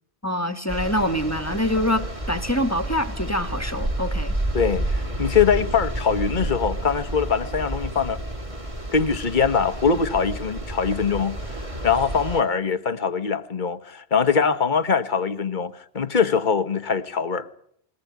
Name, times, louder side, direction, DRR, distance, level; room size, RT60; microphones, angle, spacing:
voice 1, 0.2-4.4, left 1 dB, 15° left, 9 dB, 1.6 m, -25 dB
sound 1, 0.7-12.4, right 1 dB, 30° right, 2.4 m, -30 dB
voice 2, 4.5-8.2 8.9-17.5, left 6 dB, 50° left, 12 dB, 1.3 m, -23 dB
22.0 x 18.5 x 9.4 m, 0.68 s
omnidirectional pair, 1.1 m